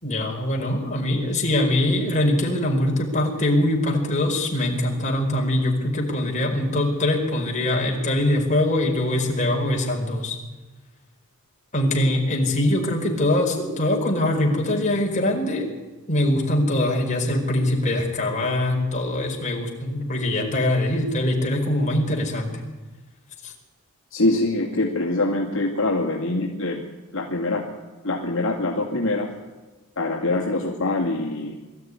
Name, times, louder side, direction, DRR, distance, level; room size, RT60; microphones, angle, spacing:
voice 1, 0.0-10.4 11.7-15.7 16.1-22.5 23.4-23.5, left 1 dB, 35° left, 0 dB, 4.8 m, -23 dB
voice 2, 24.1-26.8 27.1-27.6 28.0-29.3 30.0-31.5, left 2 dB, 60° left, -1 dB, 2.5 m, -24 dB
23.0 x 13.5 x 9.7 m, 1.2 s
head